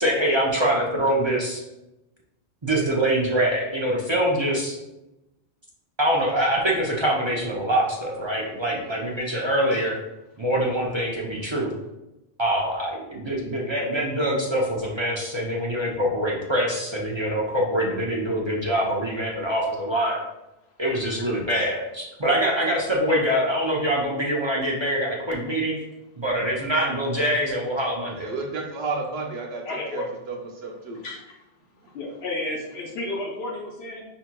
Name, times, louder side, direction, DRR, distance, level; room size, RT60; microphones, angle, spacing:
voice 1, 0.0-1.6 2.6-4.8 6.0-10.0 10.4-11.7 12.4-12.9 13.2-20.2 20.8-25.8 26.2-28.3, right 1 dB, 35° right, -3 dB, 0.5 m, -24 dB
voice 2, 28.2-29.6 29.9-31.0, right 3 dB, 85° right, 0 dB, 1.0 m, -31 dB
voice 3, 29.6-30.1 31.0-31.4 31.9-34.1, left 2 dB, 80° left, -2 dB, 0.9 m, -32 dB
5.9 x 2.8 x 2.2 m, 0.94 s
omnidirectional pair, 1.0 m